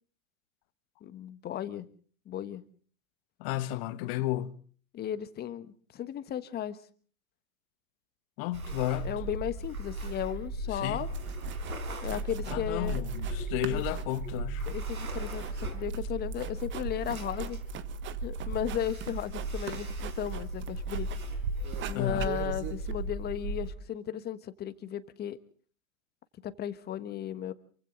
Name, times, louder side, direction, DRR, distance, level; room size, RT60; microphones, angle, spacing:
voice 1, 1.0-1.9 2.2-2.6 4.9-6.8 9.0-11.1 12.0-13.0 13.7-13.8 14.6-17.6 18.2-21.1 21.8-25.4 26.4-27.5, left 10 dB, 20° left, 1.4 m, -35 dB
voice 2, 3.4-4.6 8.4-9.1 10.7-11.1 12.5-14.7 21.9-22.3, left 15 dB, 40° left, 1.3 m, -33 dB
sound 1, 8.5-23.7, right 2 dB, 85° right, 4.8 m, -36 dB
sound 2, 10.9-11.0 11.1-11.8 12.1-13.4 13.6-21.3 21.6-22.9, right 11 dB, 25° right, 1.4 m, -43 dB
28.0 x 24.0 x 3.9 m
hypercardioid pair, 115°, 43 cm